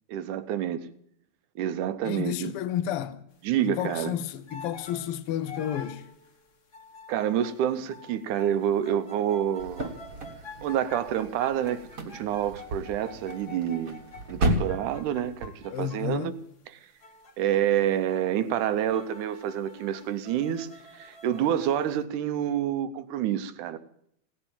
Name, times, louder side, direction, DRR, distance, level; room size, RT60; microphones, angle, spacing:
voice 1, 0.1-0.9 1.6-2.5 3.4-4.1 7.1-9.9 10.6-14.0 14.3-16.3 17.4-20.7 20.9-23.8, right 10 dB, 85° right, 2.3 m, -28 dB
voice 2, 2.0-3.2 3.6-6.1 15.6-16.4, left 10 dB, 85° left, 1.2 m, -31 dB
sound 1, 3.8-4.1 4.5-16.2 17.0-17.6 18.0-18.4 18.8-21.9, left 4 dB, 40° left, 1.6 m, -48 dB
sound 2, 9.6-15.5, right 1 dB, 40° right, 1.3 m, -33 dB
17.0 x 9.0 x 8.8 m
omnidirectional pair, 3.5 m